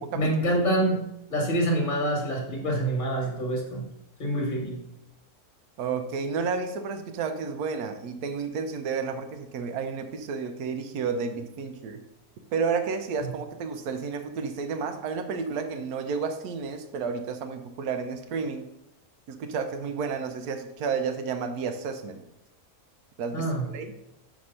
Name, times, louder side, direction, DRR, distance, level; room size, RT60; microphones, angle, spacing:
voice 1, 0.1-3.9 4.2-4.8 23.3-23.6, right 1 dB, 35° left, 0 dB, 1.5 m, -26 dB
voice 2, 5.8-12.0 12.5-18.6 19.3-22.2 23.2-23.4 23.7-23.9, right 5 dB, 85° right, 7 dB, 1.2 m, -31 dB
6.3 x 3.5 x 5.5 m, 0.84 s
omnidirectional pair, 1.6 m